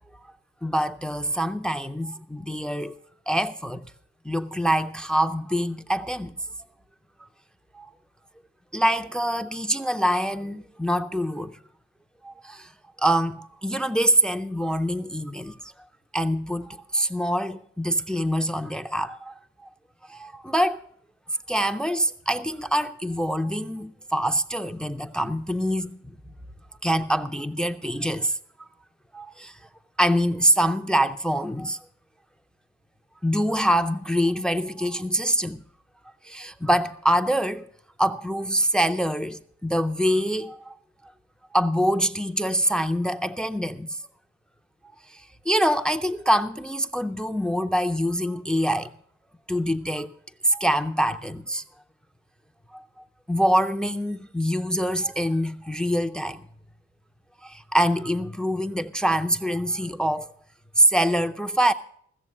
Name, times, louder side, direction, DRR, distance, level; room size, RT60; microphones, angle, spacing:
voice 1, 0.6-3.0 3.3-3.9 4.2-6.3 7.7-7.9 8.7-11.6 12.2-12.7 13.0-15.6 16.1-19.3 20.1-20.8 21.5-26.1 26.8-28.7 29.1-29.6 30.0-31.8 33.2-35.6 36.2-37.7 38.0-40.7 41.5-43.9 45.1-48.9 49.5-50.1 50.4-51.6 52.7-52.8 53.3-56.4 57.4-60.3 60.8-61.7, equal, 5° left, 0.5 m, -25 dB
15.5 x 7.0 x 7.6 m
cardioid pair, 90°, 30 cm